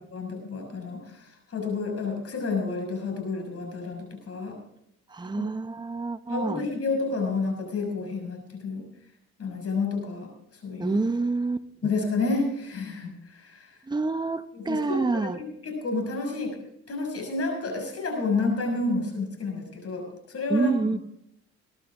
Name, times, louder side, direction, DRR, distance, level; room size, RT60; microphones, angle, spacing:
voice 1, 0.1-4.6 5.3-5.4 6.3-8.9 9.4-10.3 10.6-11.0 11.8-13.7 14.7-15.3 15.6-16.5 16.9-21.0, left 3 dB, 50° left, 3 dB, 6.4 m, -30 dB
voice 2, 5.1-6.6 10.8-11.9 13.9-15.5 20.5-21.0, right 3 dB, 15° right, 10 dB, 0.8 m, -27 dB
21.0 x 11.5 x 3.7 m, 0.75 s
cardioid pair, 90°, 30 cm